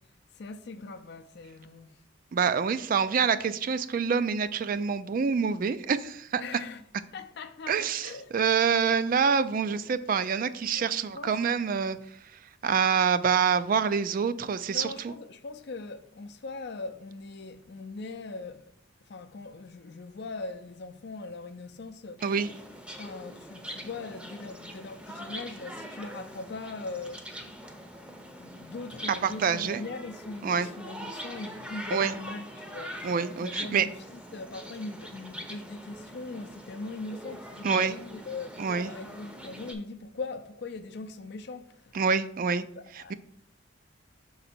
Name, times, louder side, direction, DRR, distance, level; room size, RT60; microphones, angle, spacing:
voice 1, 0.4-1.9 6.4-6.8 7.1-8.3 10.7-11.4 14.7-18.7 19.1-22.2 23.0-27.3 28.1-33.1 33.4-42.0 42.8-43.1, left 3 dB, 60° left, 0.5 m, -40 dB
voice 2, 2.3-6.4 7.7-12.0 12.6-15.1 22.2-22.5 29.2-29.8 30.4-30.7 31.9-32.1 33.0-33.9 37.6-37.9 38.6-38.9 41.9-42.7 43.1-43.2, right 6 dB, 45° right, 0.3 m, -26 dB
sound 1, 22.2-39.7, equal, 5° right, 0.6 m, -43 dB
6.2 x 3.9 x 4.3 m
head